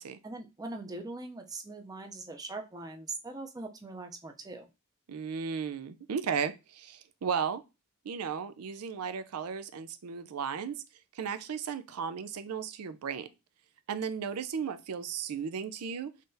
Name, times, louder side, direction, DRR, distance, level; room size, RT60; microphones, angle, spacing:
voice 1, 0.2-4.7, right 2 dB, 15° right, 0.5 m, -41 dB
voice 2, 5.1-7.6 8.0-10.7 11.1-13.3 13.9-16.1, right 6 dB, 90° right, 0.5 m, -35 dB
3.7 x 3.3 x 2.6 m
head